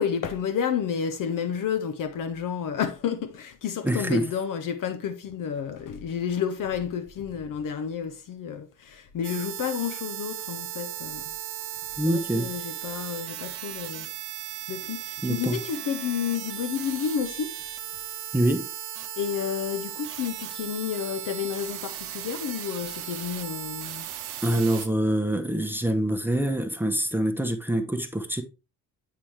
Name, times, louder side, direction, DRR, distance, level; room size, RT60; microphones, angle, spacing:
voice 1, 0.0-11.3 12.1-14.1 14.7-17.6 19.2-24.1, left 8 dB, 40° left, 0.8 m, -30 dB
voice 2, 3.8-4.2 12.0-12.5 15.2-15.6 18.3-18.7 24.4-28.4, right 1 dB, 5° right, 0.9 m, -25 dB
sound 1, 9.2-24.9, right 12 dB, 55° right, 0.9 m, -36 dB
8.4 x 4.7 x 3.3 m
figure-of-eight pair, 45°, 48 cm